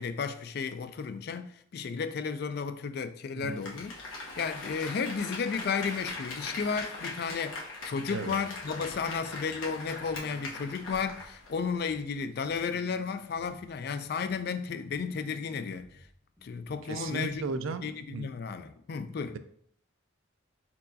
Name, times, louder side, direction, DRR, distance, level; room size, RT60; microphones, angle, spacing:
voice 1, 0.0-3.9 4.4-16.0 16.4-17.5 17.8-19.4, left 5 dB, 50° left, 0.3 m, -33 dB
Applause, 3.4-11.6 11.9-12.0, left 2 dB, 80° left, 1.1 m, -41 dB
voice 2, 8.1-8.4 16.9-18.3, right 4 dB, 80° right, 0.4 m, -35 dB
sound 1, 8.6-18.2, equal, 10° left, 1.1 m, -56 dB
4.4 x 4.1 x 2.7 m
head